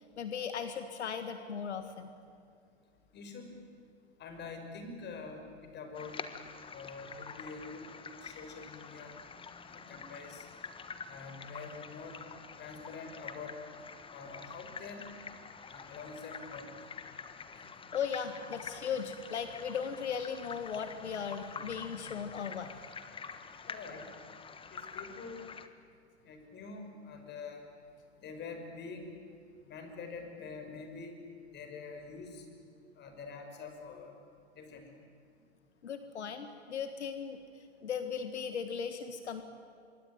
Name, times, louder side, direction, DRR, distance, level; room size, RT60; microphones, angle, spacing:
voice 1, 0.2-2.1 17.9-22.7 35.8-37.4 37.8-39.4, left 7 dB, 85° left, 9 dB, 1.9 m, -37 dB
voice 2, 3.1-3.5 4.2-6.2 6.7-9.1 9.6-10.5 11.1-12.2 12.6-13.6 14.1-15.1 15.6-16.7 23.7-24.1 24.7-25.4 26.2-27.7 28.2-29.1 29.7-31.2 31.5-32.5 32.9-34.2 34.5-34.9, left 4 dB, 30° left, 5 dB, 5.8 m, -46 dB
sound 1, 5.9-25.7, left 5 dB, 15° left, 1.5 m, -47 dB
26.0 x 23.5 x 9.4 m, 2.4 s
hypercardioid pair, 115°, 33 cm